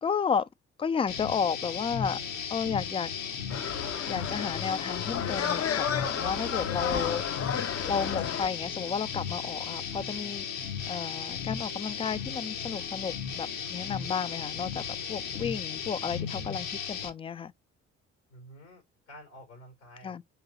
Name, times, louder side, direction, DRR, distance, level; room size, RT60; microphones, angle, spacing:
voice 1, 0.0-0.5 0.8-2.2 2.5-3.1 4.1-7.2 7.8-10.4 10.9-14.8 15.1-17.5 20.0-20.2, left 6 dB, 15° left, 0.3 m, -32 dB
sound 1, 1.1-17.1, left 7 dB, 60° left, 1.1 m, -36 dB
sound 2, 3.5-8.5, left 8 dB, 45° left, 0.7 m, -32 dB
voice 2, 18.3-20.2, equal, 85° left, 2.9 m, -50 dB
4.9 x 3.0 x 2.7 m
hypercardioid pair, 45°, 35 cm